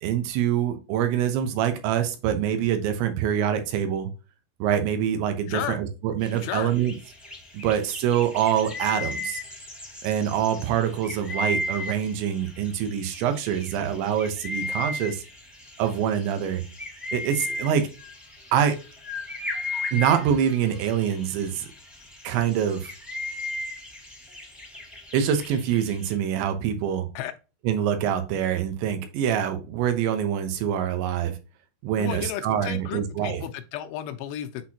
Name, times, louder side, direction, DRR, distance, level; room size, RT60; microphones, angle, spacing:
voice 1, 0.0-4.1 4.6-6.9 7.5-9.4 10.0-15.2 15.8-16.6 17.1-17.9 18.5-18.8 19.9-21.7 22.2-22.9 25.1-27.1 27.6-31.3 31.8-33.4, right 9 dB, 85° right, 7 dB, 3.3 m, -25 dB
voice 2, 5.5-5.8 6.4-6.7 27.2-27.3 32.0-34.7, left 11 dB, 80° left, 8 dB, 2.7 m, -33 dB
sound 1, 6.2-26.1, left 2 dB, ahead, 0.6 m, -36 dB
7.9 x 4.2 x 2.8 m, 0.31 s
omnidirectional pair, 5.1 m